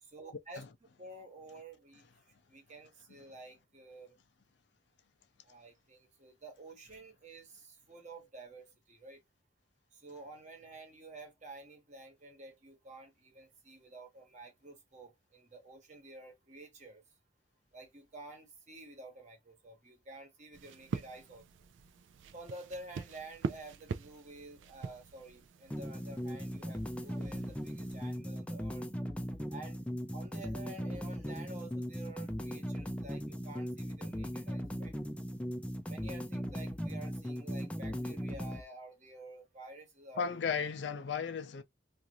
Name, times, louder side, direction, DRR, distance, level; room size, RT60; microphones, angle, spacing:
voice 1, 0.0-0.6 1.0-2.1 2.5-4.2 5.4-9.2 9.9-17.0 17.7-21.5 22.3-28.9 29.5-29.8 30.1-35.0 35.9-40.3, right 2 dB, 40° right, 1.1 m, -50 dB
sound 1, 20.5-28.2, right 5 dB, 90° right, 0.4 m, -44 dB
sound 2, 25.7-38.6, equal, 5° left, 0.4 m, -38 dB
voice 2, 40.2-41.6, left 6 dB, 70° left, 0.5 m, -35 dB
2.5 x 2.5 x 2.9 m
head